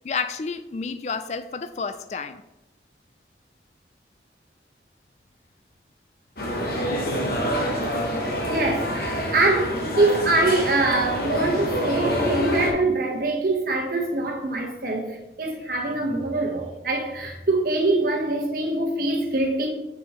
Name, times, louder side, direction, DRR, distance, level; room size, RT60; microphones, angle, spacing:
voice 1, 0.0-2.4, left 5 dB, 40° left, 0.3 m, -30 dB
sound 1, 6.4-12.7, equal, 55° left, 1.3 m, -26 dB
voice 2, 8.2-19.7, right 2 dB, 55° right, 1.2 m, -24 dB
7.0 x 6.1 x 3.1 m
head